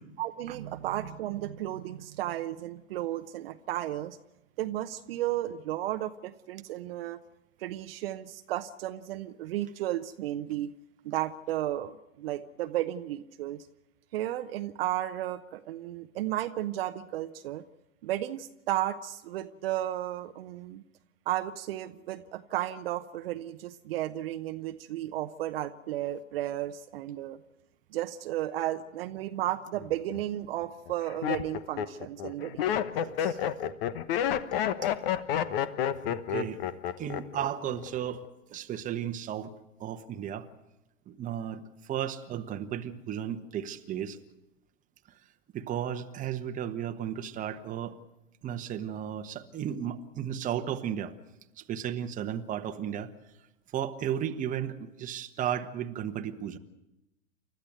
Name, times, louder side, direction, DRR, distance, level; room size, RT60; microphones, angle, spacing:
voice 1, 0.2-4.2 4.6-7.2 7.6-10.7 11.0-13.7 14.1-17.6 18.0-20.8 21.3-27.4 27.9-33.4, right 13 dB, 50° right, 8 dB, 1.0 m, -34 dB
Laughter, 29.8-30.2 30.9-37.5 37.7-38.3, left 9 dB, 45° left, 1.2 m, -30 dB
voice 2, 36.1-36.6 37.0-38.2 38.5-39.5 39.8-40.5 41.1-44.2 45.5-48.0 48.4-51.1 51.6-53.1 53.7-56.6, right 9 dB, 20° right, 7 dB, 1.2 m, -34 dB
29.5 x 13.0 x 8.1 m, 0.96 s
figure-of-eight pair, 110°, 39 cm